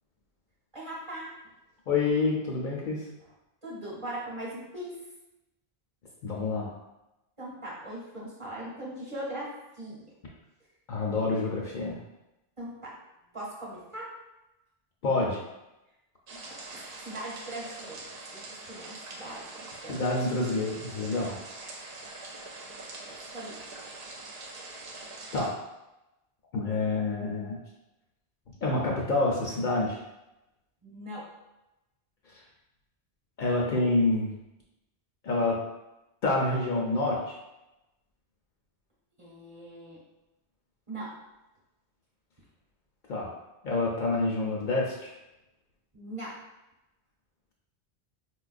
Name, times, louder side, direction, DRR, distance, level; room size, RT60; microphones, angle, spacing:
voice 1, 0.7-1.4 3.6-5.1 7.4-10.0 12.6-13.0 13.3-14.1 16.3-18.0 18.3-20.0 21.6-22.2 23.1-23.6 30.8-31.3 39.2-40.0 40.9-41.2 45.9-46.4, right 1 dB, 35° right, -6 dB, 0.9 m, -40 dB
voice 2, 1.9-3.0 6.2-6.7 10.9-12.0 15.0-15.4 19.9-21.4 25.3-25.6 26.5-27.6 28.6-30.0 33.4-34.3 35.2-35.6 36.2-37.3 43.1-43.3 43.6-45.1, left 2 dB, 60° left, -2 dB, 0.6 m, -27 dB
sound 1, 16.3-25.5, right 2 dB, 75° right, 0.8 m, -44 dB
4.2 x 2.3 x 2.4 m, 0.95 s
omnidirectional pair, 1.0 m